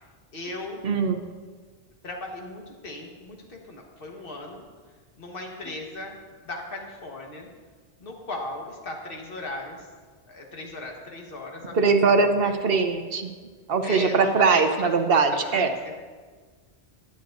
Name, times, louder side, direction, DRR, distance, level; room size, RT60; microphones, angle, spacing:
voice 1, 0.3-0.8 2.0-4.6 5.2-6.2 6.4-7.5 8.0-9.9 10.3-11.9 12.4-12.6 13.8-14.9 15.4-15.9, left 2 dB, 55° left, 0 dB, 1.6 m, -37 dB
voice 2, 0.8-1.2 11.7-13.3 13.7-15.7, right 4 dB, 60° right, 7 dB, 1.0 m, -21 dB
17.0 x 9.4 x 2.6 m, 1.5 s
omnidirectional pair, 1.2 m